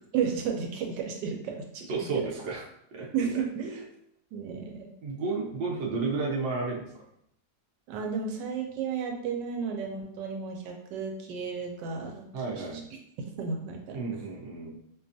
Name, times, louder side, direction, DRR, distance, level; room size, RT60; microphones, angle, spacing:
voice 1, 0.1-2.3 3.1-3.8 4.3-4.9 7.9-12.2 12.6-12.7 13.4-14.0, right 6 dB, 85° right, 2 dB, 1.2 m, -33 dB
voice 2, 1.9-2.7 2.9-3.1 5.0-7.0 12.3-12.8 13.9-14.8, right 4 dB, 60° right, -1 dB, 0.8 m, -32 dB
4.3 x 2.3 x 2.6 m, 0.74 s
omnidirectional pair, 1.9 m